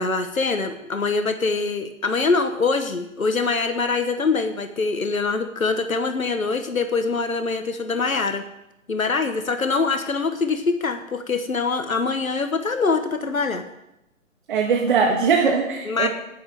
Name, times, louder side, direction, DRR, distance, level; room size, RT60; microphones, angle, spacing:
voice 1, 0.0-8.4 8.9-13.6 15.8-16.1, left 4 dB, 80° left, 8 dB, 1.3 m, -24 dB
voice 2, 14.5-16.1, right 5 dB, 40° right, 1 dB, 1.5 m, -20 dB
9.2 x 8.8 x 7.5 m, 0.88 s
figure-of-eight pair, 140°, 41 cm